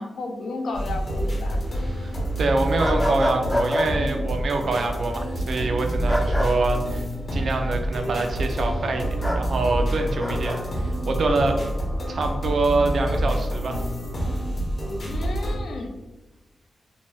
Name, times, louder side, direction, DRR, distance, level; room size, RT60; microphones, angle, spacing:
voice 1, 0.0-1.6 15.0-15.9, left 2 dB, 75° left, 3 dB, 0.4 m, -33 dB
sound 1, 0.7-15.6, equal, 45° left, 0.7 m, -27 dB
voice 2, 2.4-7.1 7.3-11.6 12.1-13.8, right 3 dB, 60° right, 4 dB, 0.4 m, -25 dB
sound 2, 2.8-3.9 6.1-6.5 9.2-9.4 10.2-10.6, equal, 5° left, 0.4 m, -26 dB
2.8 x 2.2 x 3.0 m, 1.1 s
wide cardioid pair, 155°, 0 cm